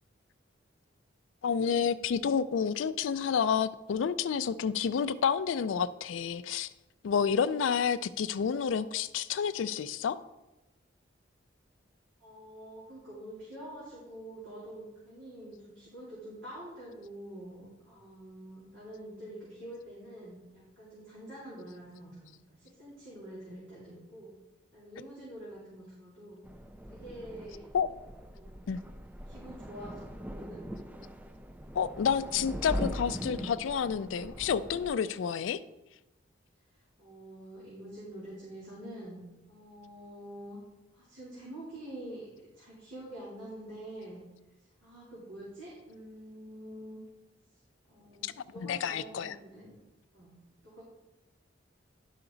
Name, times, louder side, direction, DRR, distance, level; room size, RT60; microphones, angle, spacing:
voice 1, 1.4-6.7 7.0-10.2 27.7-27.9 28.7-28.8 31.7-35.6 48.2-48.3 48.6-49.4, left 7 dB, 90° left, 12 dB, 0.4 m, -29 dB
voice 2, 12.2-24.3 24.7-26.4 26.9-27.6 28.3-28.5 29.2-30.7 36.7-39.2 39.5-40.6 40.9-42.3 42.5-44.2 44.8-47.0 47.9-49.7 50.1-50.8, right 1 dB, 90° right, -8 dB, 3.2 m, -46 dB
sound 1, 26.4-34.9, equal, 10° right, 0.4 m, -41 dB
11.0 x 5.8 x 3.9 m, 0.99 s
head